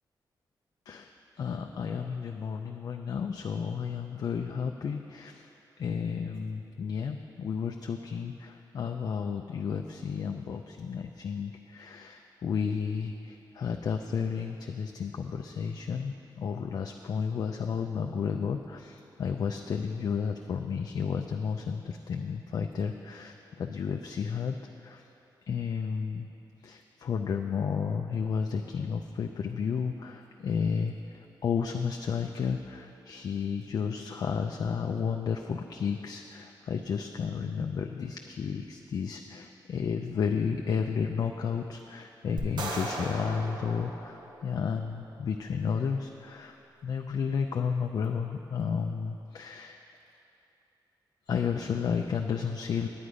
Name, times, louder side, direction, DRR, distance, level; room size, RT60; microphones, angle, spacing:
voice 1, 1.4-5.5 5.8-25.0 25.5-26.3 26.6-46.6 46.8-49.8 51.3-52.9, left 6 dB, 55° left, 3 dB, 0.4 m, -32 dB
sound 1, 42.4-44.8, right 1 dB, 70° right, 1.1 m, -37 dB
9.7 x 9.4 x 5.0 m, 3.0 s
wide cardioid pair, 155°, 8 cm